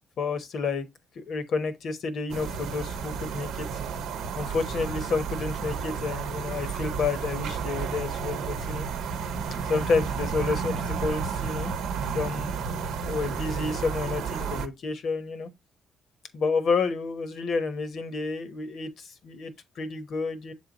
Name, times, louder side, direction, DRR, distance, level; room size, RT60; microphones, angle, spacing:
voice 1, 0.2-0.9 1.2-3.7 4.4-8.9 9.7-11.7 12.1-12.6 13.0-15.5 16.3-20.5, left 4 dB, 65° left, 1.0 m, -30 dB
sound 1, 2.3-14.7, right 6 dB, 85° right, 0.8 m, -32 dB
7.2 x 3.4 x 4.0 m
cardioid pair, 90°, 0 cm